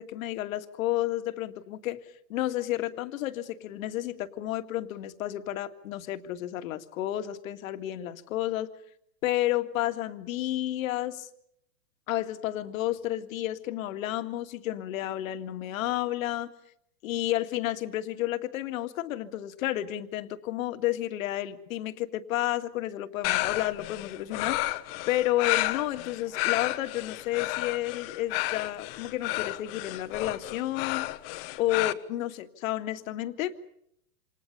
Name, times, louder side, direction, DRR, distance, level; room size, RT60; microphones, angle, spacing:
voice 1, 0.0-2.0 2.3-8.7 9.2-11.3 12.1-16.5 17.0-24.6 25.1-31.1 31.6-33.6, left 14 dB, 55° left, 8 dB, 2.1 m, -31 dB
sound 1, 23.2-31.9, left 19 dB, 35° left, 1.3 m, -31 dB
28.5 x 27.5 x 5.6 m, 0.74 s
hypercardioid pair, 140°, 49 cm